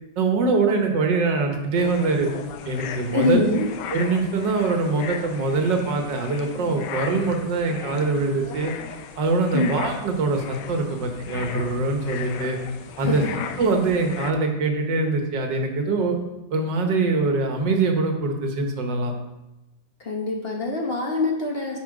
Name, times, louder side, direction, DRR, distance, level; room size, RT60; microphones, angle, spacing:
voice 1, 0.2-2.3 2.7-3.4 3.9-8.7 9.2-12.6 13.0-13.2 13.6-16.2 16.5-19.1, right 3 dB, 90° right, 3 dB, 1.8 m, -23 dB
sound 1, 1.8-14.3, left 8 dB, 80° left, 1.3 m, -37 dB
voice 2, 3.1-3.7 9.5-9.8 13.0-13.3 20.0-21.8, left 2 dB, 40° left, 0 dB, 1.2 m, -24 dB
8.6 x 5.6 x 4.9 m, 0.99 s
omnidirectional pair, 1.9 m